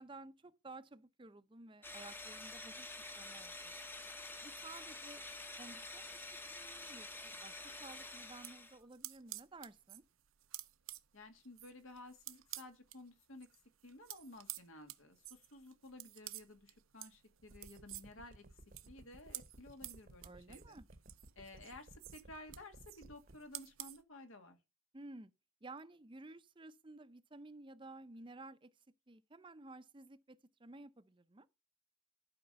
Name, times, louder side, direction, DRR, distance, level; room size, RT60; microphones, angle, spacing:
voice 1, 0.0-2.9 3.2-3.7 4.4-5.2 5.6-6.2 6.5-10.0 20.2-20.9 24.9-25.3 25.6-28.7 29.1-31.5, right 2 dB, 25° right, 0.6 m, -54 dB
sound 1, 1.8-8.8, left 2 dB, 10° left, 0.8 m, -48 dB
sound 2, 8.2-13.0 13.3-24.0, right 16 dB, 85° right, 0.7 m, -51 dB
voice 2, 11.1-13.5 13.8-18.4 18.8-20.8 21.4-24.6, left 2 dB, 80° left, 2.1 m, -54 dB
sound 3, 17.4-23.4, right 1 dB, 40° right, 0.9 m, -57 dB
12.0 x 5.1 x 6.8 m
head